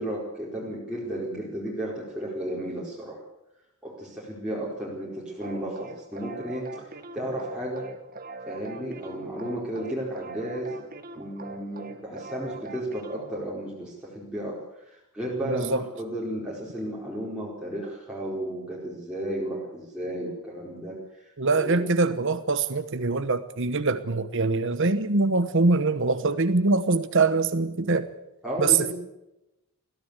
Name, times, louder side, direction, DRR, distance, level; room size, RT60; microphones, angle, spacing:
voice 1, 0.0-3.2 3.8-6.8 7.1-7.9 8.5-10.9 11.1-21.0 21.5-21.8 28.4-28.9, right 1 dB, 5° right, 4.7 m, -33 dB
sound 1, 5.4-13.4, right 3 dB, 40° right, 1.7 m, -42 dB
voice 2, 15.4-15.8 21.4-28.1 28.6-28.9, right 3 dB, 55° right, 1.1 m, -23 dB
22.0 x 15.0 x 8.2 m
head